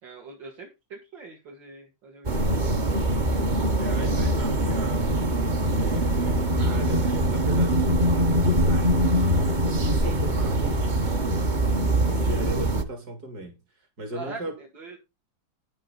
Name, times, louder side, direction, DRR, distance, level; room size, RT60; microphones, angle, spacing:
voice 1, 0.0-2.4 10.0-10.1 14.1-15.0, right 3 dB, 70° right, 2.8 m, -42 dB
sound 1, 2.2-12.8, right 1 dB, 30° right, 1.0 m, -23 dB
voice 2, 3.8-5.0 5.8-9.1 9.8-11.6 12.0-13.6 14.0-14.6, right 1 dB, 50° right, 3.6 m, -37 dB
9.9 x 9.2 x 3.9 m
omnidirectional pair, 2.1 m